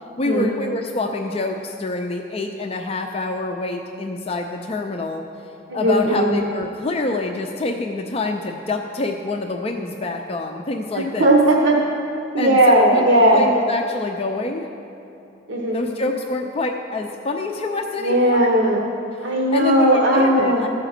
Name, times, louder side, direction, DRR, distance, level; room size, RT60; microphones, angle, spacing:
voice 1, 0.2-5.2 5.7-11.3 12.4-14.7 15.7-18.5 19.5-20.7, left 2 dB, 30° left, 3 dB, 0.4 m, -26 dB
voice 2, 5.7-6.4 10.9-11.8 12.3-13.5 15.5-15.9 18.0-18.8 19.2-20.6, right 1 dB, 80° right, -2 dB, 1.0 m, -17 dB
14.5 x 4.9 x 6.5 m, 2.7 s
head